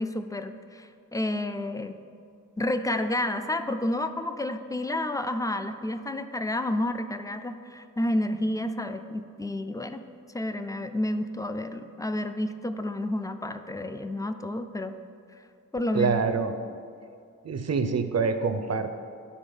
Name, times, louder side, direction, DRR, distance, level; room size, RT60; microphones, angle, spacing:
voice 1, 0.0-2.0 2.6-10.0 10.3-15.0 15.7-16.2, left 1 dB, 10° left, 9 dB, 0.4 m, -30 dB
voice 2, 15.9-16.5 17.4-19.0, right 5 dB, 55° right, 9 dB, 0.6 m, -26 dB
11.5 x 4.1 x 5.3 m, 2.3 s
wide cardioid pair, 100°, 31 cm